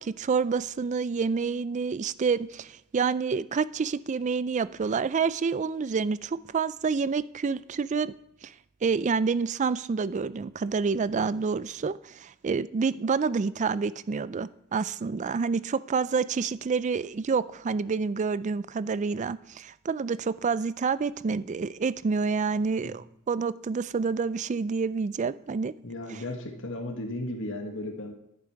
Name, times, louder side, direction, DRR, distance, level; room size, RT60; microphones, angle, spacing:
voice 1, 0.0-8.1 8.4-8.5 8.8-25.7, right 5 dB, 35° right, 0.3 m, -28 dB
voice 2, 25.8-28.1, left 1 dB, 60° left, 1.6 m, -35 dB
10.5 x 9.7 x 4.7 m
head